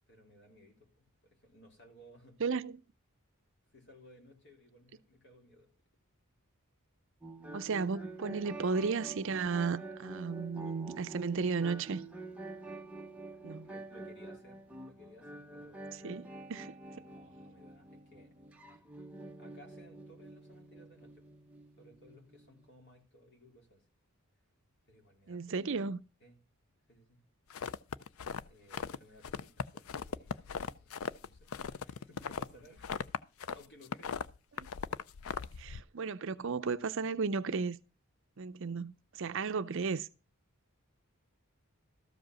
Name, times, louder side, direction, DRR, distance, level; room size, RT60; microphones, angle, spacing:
voice 1, 0.1-2.4 3.7-5.7 13.3-16.2 16.9-18.4 18.6-18.8 19.4-21.2 21.8-23.8 24.9-25.5 26.2-26.4 26.9-27.2 28.5-32.9 33.5-34.2, equal, 50° left, 3.0 m, -59 dB
voice 2, 2.4-2.8 7.5-12.0 13.4-13.7 16.0-16.8 25.3-26.0 34.6-34.7 35.6-37.8 38.4-40.1, right 5 dB, 55° right, 0.5 m, -34 dB
sound 1, 7.2-22.7, right 2 dB, 5° right, 0.8 m, -48 dB
sound 2, 27.5-29.0 29.2-33.6 33.8-35.8, left 6 dB, 65° left, 0.4 m, -38 dB
13.5 x 5.1 x 6.2 m
head